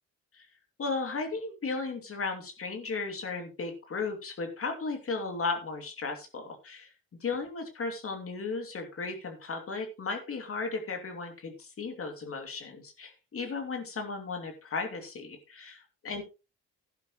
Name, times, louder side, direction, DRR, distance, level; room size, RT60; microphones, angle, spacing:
voice 1, 0.8-6.9 7.2-16.2, left 4 dB, 50° left, 4 dB, 2.8 m, -35 dB
12.5 x 10.5 x 3.1 m, 0.30 s
cardioid pair, 90°, 30 cm